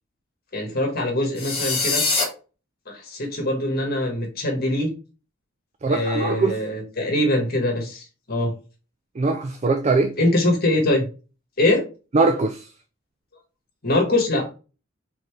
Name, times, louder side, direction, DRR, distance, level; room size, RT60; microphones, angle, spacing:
voice 1, 0.5-2.0 2.9-4.9 5.9-8.5 10.2-11.1 11.6-11.8 13.8-14.5, left 1 dB, 50° left, 1.5 m, -23 dB
sound 1, 1.4-2.2, left 4 dB, 30° left, 1.7 m, -23 dB
voice 2, 5.8-6.6 9.2-10.1 12.1-12.7, right 3 dB, 35° right, 0.4 m, -21 dB
4.3 x 3.7 x 3.2 m
head